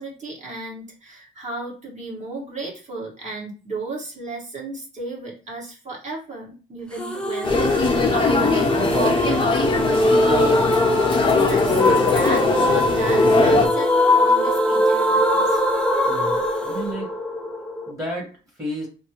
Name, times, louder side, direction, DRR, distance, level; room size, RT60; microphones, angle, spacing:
voice 1, 0.0-8.7 8.9-9.4 9.7-15.6, right 2 dB, 35° right, -4 dB, 1.7 m, -33 dB
sound 1, 7.0-17.9, left 1 dB, 5° left, 0.5 m, -21 dB
sound 2, 7.4-13.7, left 4 dB, 25° left, 0.8 m, -20 dB
voice 2, 9.2-9.6 13.4-13.8 16.0-17.1 17.8-18.9, right 1 dB, 15° right, -3 dB, 1.6 m, -32 dB
3.3 x 2.1 x 3.0 m, 0.38 s
cardioid pair, 90°, 20 cm